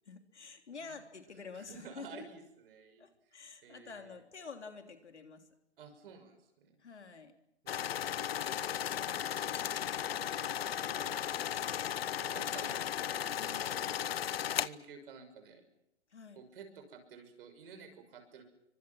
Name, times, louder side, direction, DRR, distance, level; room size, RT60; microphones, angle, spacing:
voice 1, 0.1-2.2 3.0-5.5 6.8-7.3 8.9-10.0 13.4-13.9 16.1-16.4, left 5 dB, 75° left, 6 dB, 3.4 m, -49 dB
voice 2, 1.5-4.2 5.8-6.8 7.6-8.8 10.2-11.5 12.0-13.5 14.5-15.6 16.3-18.4, right 5 dB, 50° right, 7 dB, 6.2 m, -53 dB
sound 1, 7.7-14.7, left 10 dB, 60° left, 0.8 m, -35 dB
27.5 x 24.5 x 6.2 m, 0.83 s
figure-of-eight pair, 125°, 34 cm